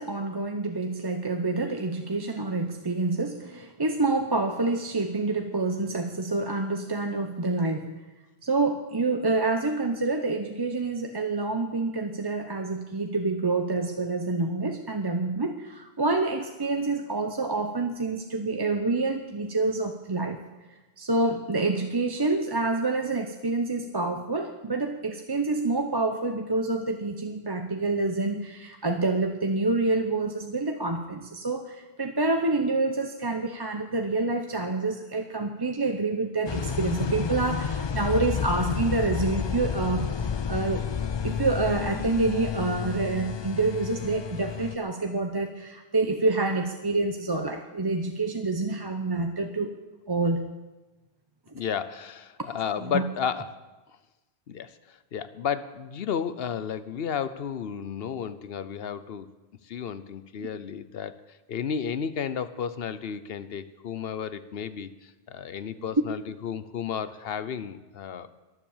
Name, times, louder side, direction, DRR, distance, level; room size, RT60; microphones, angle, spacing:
voice 1, 0.0-7.9 8.4-20.4 21.0-40.1 40.5-40.9 41.2-49.7 50.1-50.4 52.8-53.0, right 3 dB, 25° right, 5 dB, 0.7 m, -27 dB
sound 1, 36.5-44.8, left 7 dB, 45° left, 0.3 m, -30 dB
voice 2, 51.5-53.6 54.5-59.3 59.6-68.3, left 7 dB, 70° left, 14 dB, 0.9 m, -33 dB
22.5 x 7.5 x 7.2 m, 1.1 s
omnidirectional pair, 1.1 m